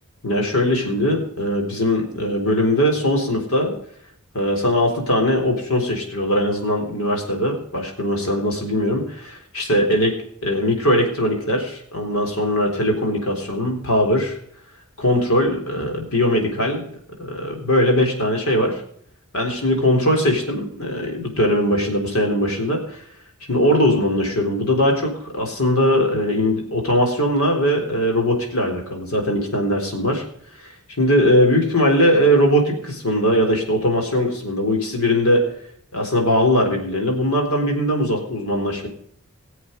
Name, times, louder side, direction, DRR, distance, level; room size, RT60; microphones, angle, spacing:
voice 1, 0.2-3.8 4.3-14.4 15.0-16.8 17.2-18.8 19.3-22.8 23.5-30.2 31.0-35.5 35.9-38.9, equal, 70° left, 2 dB, 3.9 m, -20 dB
19.5 x 7.8 x 5.2 m, 0.65 s
head